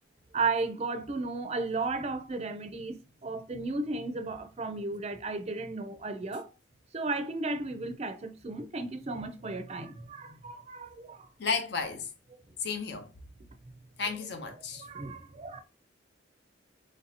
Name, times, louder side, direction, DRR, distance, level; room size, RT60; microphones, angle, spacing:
voice 1, 0.3-3.0 3.2-6.5 6.9-11.3 14.6-15.6, right 3 dB, 35° right, 0.5 m, -34 dB
voice 2, 11.4-12.1 12.6-13.1 14.0-14.8, left 5 dB, 60° left, 0.7 m, -33 dB
3.2 x 2.6 x 4.1 m
head